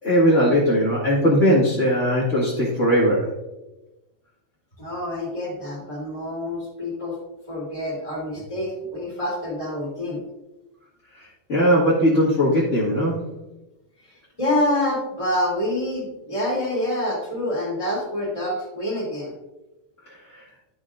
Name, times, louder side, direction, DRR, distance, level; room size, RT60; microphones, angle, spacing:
voice 1, 0.0-3.3 11.2-13.2 20.3-20.4, equal, 35° left, -9 dB, 1.3 m, -19 dB
voice 2, 4.8-7.2 7.5-10.2 14.0-19.3, left 1 dB, 10° left, -6 dB, 2.2 m, -27 dB
11.0 x 6.1 x 2.5 m, 0.99 s
omnidirectional pair, 4.2 m